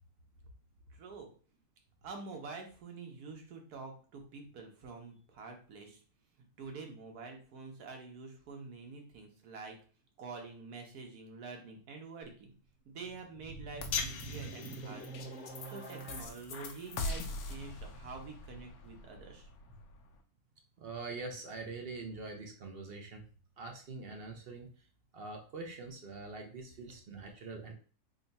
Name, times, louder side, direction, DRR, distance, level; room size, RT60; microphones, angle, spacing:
voice 1, 0.9-1.3 2.0-6.0 6.4-9.7 10.2-12.5 12.8-19.8, right 4 dB, 85° right, 3 dB, 1.4 m, -47 dB
sound 1, 13.1-16.2, right 3 dB, 10° left, 0.6 m, -45 dB
sound 2, 13.8-20.2, left 4 dB, 80° left, 1.1 m, -41 dB
voice 2, 20.8-23.2 23.6-24.7 25.1-27.7, right 3 dB, 55° right, 3 dB, 0.7 m, -44 dB
3.7 x 2.2 x 4.0 m, 0.40 s
omnidirectional pair, 1.6 m